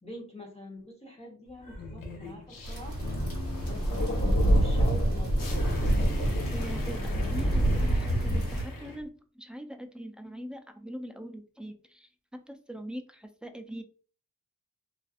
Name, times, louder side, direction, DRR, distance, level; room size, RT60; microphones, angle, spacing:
voice 1, 0.0-3.0 3.6-5.4 6.2-6.5 6.8-7.6, equal, 20° left, -1 dB, 0.8 m, -46 dB
sound 1, 1.6-9.0, left 2 dB, 85° left, 0.6 m, -40 dB
sound 2, 2.6-8.6, right 1 dB, 45° left, 1.5 m, -26 dB
voice 2, 6.5-13.8, equal, 5° right, 5 dB, 0.3 m, -42 dB
2.5 x 2.3 x 2.4 m, 0.40 s
wide cardioid pair, 95°, 33 cm